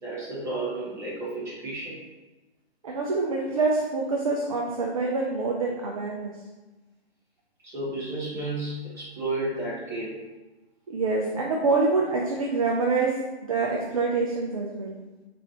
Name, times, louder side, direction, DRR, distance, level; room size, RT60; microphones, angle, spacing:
voice 1, 0.0-2.0 7.6-10.2, right 2 dB, 10° right, -11 dB, 1.2 m, -32 dB
voice 2, 2.8-6.4 10.9-15.0, right 3 dB, 35° right, -2 dB, 0.4 m, -26 dB
4.0 x 3.1 x 2.9 m, 1.1 s
figure-of-eight pair, 140°, 32 cm